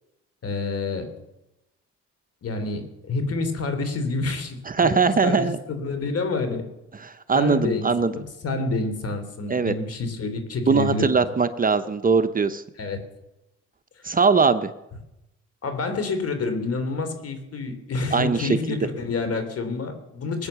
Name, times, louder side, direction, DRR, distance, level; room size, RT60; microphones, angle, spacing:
voice 1, 0.4-1.1 2.4-6.6 7.3-11.2 12.8-13.0 15.6-20.5, left 3 dB, 50° left, 8 dB, 3.2 m, -28 dB
voice 2, 4.7-5.6 7.0-8.1 9.5-9.7 10.7-12.6 14.0-14.7 18.1-18.8, right 5 dB, 30° right, 11 dB, 0.8 m, -21 dB
20.5 x 8.8 x 6.9 m, 0.91 s
cardioid pair, 90°, 30 cm